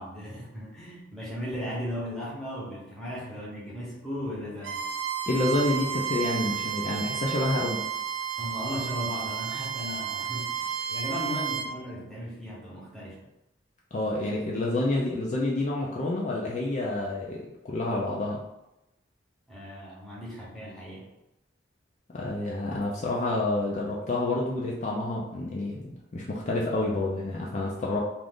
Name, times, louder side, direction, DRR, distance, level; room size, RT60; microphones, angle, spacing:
voice 1, 0.0-4.8 8.4-13.2 19.5-21.1, equal, ahead, -6 dB, 0.8 m, -36 dB
Bowed string instrument, 4.6-11.7, right 8 dB, 80° right, 0.4 m, -32 dB
voice 2, 5.3-7.8 13.9-18.4 22.1-28.0, left 2 dB, 40° left, -3 dB, 0.4 m, -28 dB
2.5 x 2.5 x 3.4 m, 0.91 s
head